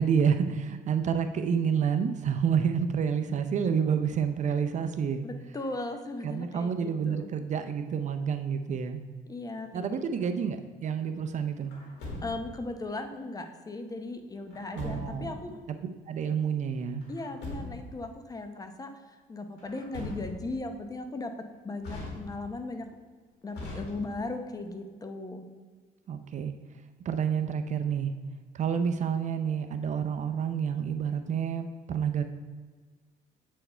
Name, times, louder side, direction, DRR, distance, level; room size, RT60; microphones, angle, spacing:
voice 1, 0.0-5.3 6.2-9.0 9.7-11.7 14.7-15.4 16.1-17.1 26.1-26.5 27.0-28.1 28.5-32.2, right 7 dB, 45° right, 8 dB, 0.6 m, -29 dB
voice 2, 5.2-7.3 9.3-9.9 10.2-10.3 12.2-15.6 17.1-21.3 21.6-22.9 23.4-25.4, left 2 dB, 20° left, 6 dB, 0.7 m, -37 dB
Truck, 11.7-12.7 14.5-15.4 17.0-18.0 19.6-20.6 21.8-22.6 23.5-24.4, left 2 dB, 85° left, 2.1 m, -40 dB
8.1 x 4.5 x 4.4 m, 1.5 s
cardioid pair, 110°, 17 cm